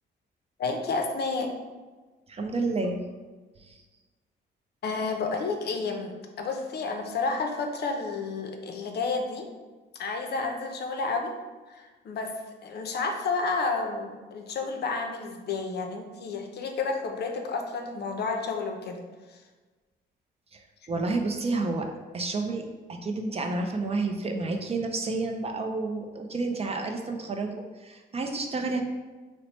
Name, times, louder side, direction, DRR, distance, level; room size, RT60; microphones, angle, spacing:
voice 1, 0.6-1.5 4.8-9.5 10.0-11.3 11.7-12.3 12.6-19.0 19.3-19.4, left 4 dB, 55° left, 3 dB, 0.5 m, -31 dB
voice 2, 2.3-3.0 3.6-3.8 20.5-21.9 22.1-28.8, right 3 dB, 30° right, 3 dB, 0.4 m, -30 dB
2.9 x 2.1 x 4.1 m, 1.3 s
cardioid pair, 90°, 20 cm